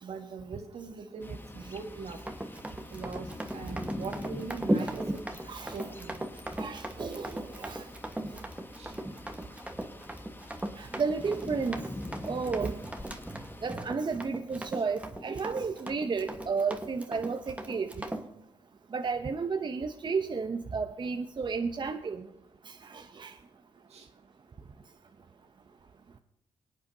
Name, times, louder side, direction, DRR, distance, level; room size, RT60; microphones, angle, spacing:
voice 1, 0.0-2.2 2.9-3.3 3.5-5.2 5.7-6.2 8.8-9.0 23.9-24.1, right 5 dB, 65° right, 4 dB, 1.9 m, -41 dB
sound 1, 1.2-13.7, left 1 dB, 20° left, 1.0 m, -44 dB
Run, 2.2-18.2, right 1 dB, 10° right, 1.4 m, -37 dB
voice 2, 5.5-5.9 6.6-7.9 10.8-11.9 12.2-12.8 13.6-18.1 18.9-22.3 22.7-23.3, right 5 dB, 45° right, 6 dB, 0.8 m, -32 dB
23.5 x 8.7 x 2.8 m, 0.84 s
supercardioid pair, 55°, 11 cm